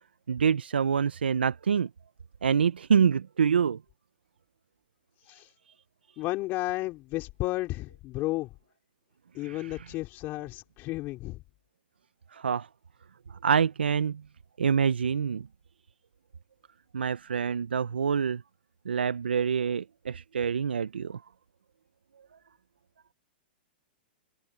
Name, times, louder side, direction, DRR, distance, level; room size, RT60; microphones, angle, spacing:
voice 1, 0.3-1.9 2.4-3.8 5.7-5.8 9.4-9.9 12.3-12.7 13.3-14.2 14.6-15.5 16.9-18.4 18.8-21.2, right 7 dB, 85° right, 0.9 m, -26 dB
voice 2, 6.2-8.5 9.3-11.4, left 19 dB, 40° left, 3.4 m, -33 dB
hypercardioid pair, 115°, 5 cm